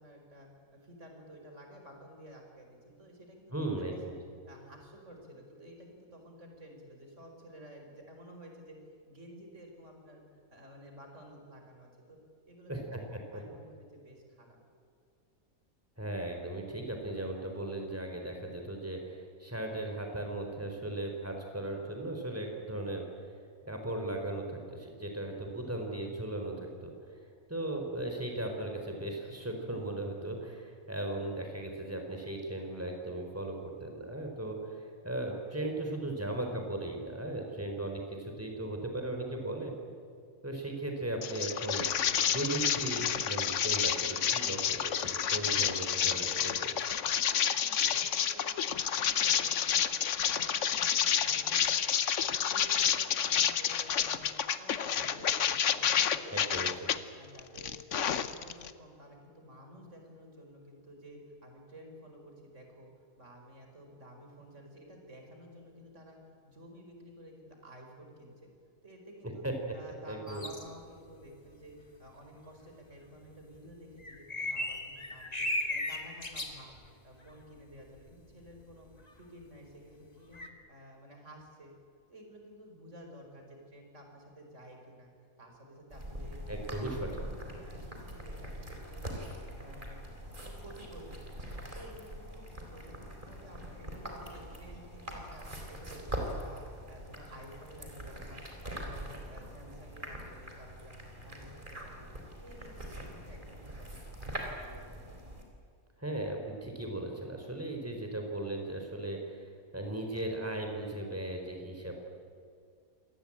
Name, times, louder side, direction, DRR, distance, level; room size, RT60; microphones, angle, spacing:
voice 1, 0.0-4.0 4.5-8.8 9.1-10.2 10.5-13.1 13.3-14.6 38.6-38.8 47.5-51.8 52.4-56.9 57.1-62.9 63.2-68.5 68.8-69.5 69.7-76.8 77.0-78.9 79.2-80.4 80.7-81.7 82.1-87.4 87.7-89.3 89.6-91.5 91.7-92.4 92.7-101.0 101.2-105.2, equal, 60° right, 2 dB, 5.2 m, -52 dB
voice 2, 3.5-4.1 12.7-13.0 16.0-23.0 23.7-26.9 27.5-39.7 40.4-41.8 42.3-46.7 56.3-56.7 69.4-69.5 70.1-70.4 86.5-87.1 106.0-109.4 109.7-112.0, right 1 dB, 10° right, 2 dB, 4.4 m, -37 dB
sound 1, 41.2-57.0 57.4-58.7, left 8 dB, 60° left, 1.2 m, -29 dB
sound 2, 70.3-70.7 73.5-73.6 74.0-76.9 77.2-77.3 78.0-78.1 78.4-78.6 78.9-79.1 80.3-80.5, left 1 dB, 30° left, 2.2 m, -36 dB
sound 3, 85.9-105.4, right 1 dB, 35° right, 4.3 m, -43 dB
26.5 x 19.0 x 8.9 m, 2.2 s
omnidirectional pair, 1.4 m